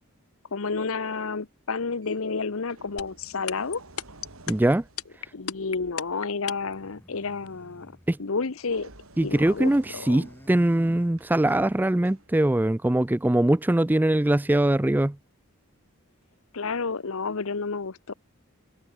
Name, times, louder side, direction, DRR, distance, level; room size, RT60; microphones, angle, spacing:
voice 1, 0.5-3.8 5.3-7.9 8.2-8.9 9.2-10.3 16.5-18.1, left 4 dB, 70° left, 0.9 m, -30 dB
sound 1, 2.0-2.2 2.7-6.2 8.6-12.6 13.6-13.8, right 2 dB, 75° right, 4.4 m, -51 dB
sound 2, 3.0-6.8, left 8 dB, 85° left, 1.8 m, -32 dB
voice 2, 4.5-4.8 8.1-8.2 9.2-15.2, right 1 dB, 10° right, 0.3 m, -22 dB
sound 3, 6.4-8.9 9.2-11.7, equal, 10° left, 2.5 m, -52 dB
head